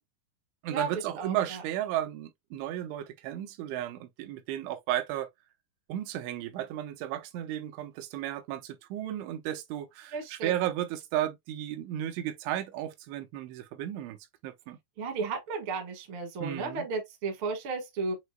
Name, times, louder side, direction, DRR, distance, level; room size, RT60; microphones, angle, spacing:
voice 1, 0.6-5.3 5.9-14.2 14.4-14.8 16.4-16.8, right 12 dB, 90° right, 3.2 m, -34 dB
voice 2, 10.1-10.5 15.0-18.1, right 4 dB, 65° right, 1.2 m, -33 dB
7.8 x 2.9 x 2.2 m
omnidirectional pair, 5.2 m